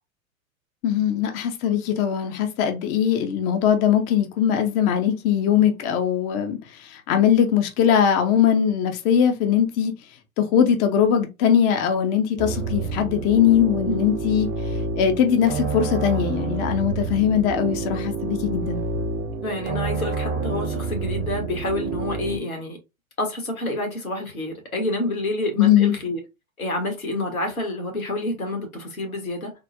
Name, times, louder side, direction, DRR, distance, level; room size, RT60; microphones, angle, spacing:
voice 1, 0.8-6.6 7.1-9.9 10.4-14.5 14.9-18.9 25.6-25.9, left 9 dB, 20° left, 0.3 m, -20 dB
sound 1, 12.4-22.4, right 4 dB, 60° right, 0.8 m, -28 dB
voice 2, 19.4-22.8 23.2-26.2 26.6-29.5, left 2 dB, 85° left, 1.5 m, -28 dB
3.5 x 2.1 x 2.7 m
figure-of-eight pair, 90°, 41 cm